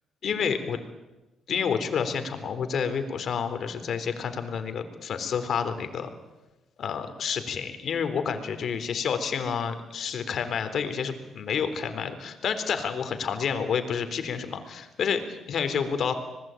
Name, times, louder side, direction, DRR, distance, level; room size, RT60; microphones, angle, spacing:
voice 1, 0.2-0.8 1.5-6.1 6.8-16.1, left 6 dB, 60° left, 9 dB, 3.7 m, -29 dB
26.5 x 20.0 x 9.1 m, 1.1 s
cardioid pair, 90°, 0 cm